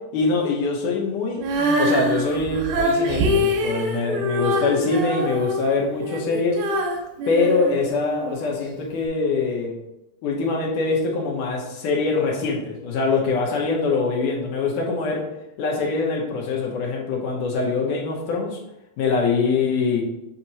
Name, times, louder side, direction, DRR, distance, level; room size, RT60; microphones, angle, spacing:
voice 1, 0.1-6.6 7.3-9.8 10.2-15.2 15.6-18.6 19.0-20.0, left 4 dB, 70° left, -2 dB, 2.3 m, -23 dB
Female singing, 1.4-8.4 9.0-9.1, equal, 75° right, 2.4 m, -24 dB
7.6 x 4.2 x 3.0 m, 0.89 s
omnidirectional pair, 4.1 m